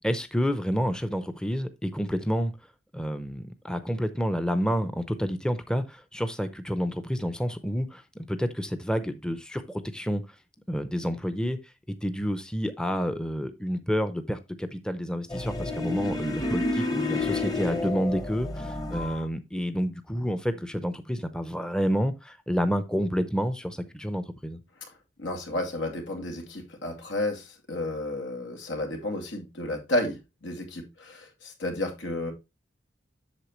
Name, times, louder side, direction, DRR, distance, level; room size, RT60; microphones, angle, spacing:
voice 1, 0.0-2.5 2.9-10.2 10.7-11.6 11.9-24.6, equal, 5° left, 0.6 m, -29 dB
sound 1, 15.3-19.2, left 2 dB, 20° left, 1.0 m, -30 dB
voice 2, 25.2-32.3, left 1 dB, 90° left, 2.4 m, -32 dB
8.2 x 6.6 x 3.0 m
head